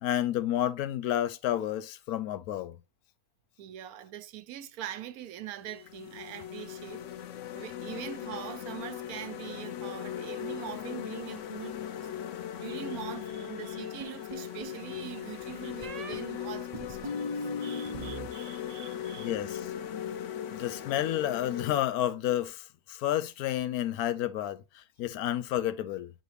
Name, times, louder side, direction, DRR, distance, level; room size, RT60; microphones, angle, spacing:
voice 1, 0.0-2.8 19.2-19.7 20.5-26.1, left 12 dB, 90° left, 1.1 m, -30 dB
voice 2, 3.6-7.0 7.3-12.1 12.5-19.4, right 11 dB, 85° right, 1.1 m, -43 dB
sound 1, 4.9-5.1 5.6-21.8, left 10 dB, 65° left, 0.8 m, -39 dB
sound 2, 14.0-14.8 15.8-16.2 16.7-18.3 18.6-19.1, left 1 dB, 35° right, 0.6 m, -38 dB
7.9 x 4.1 x 3.2 m
omnidirectional pair, 1.5 m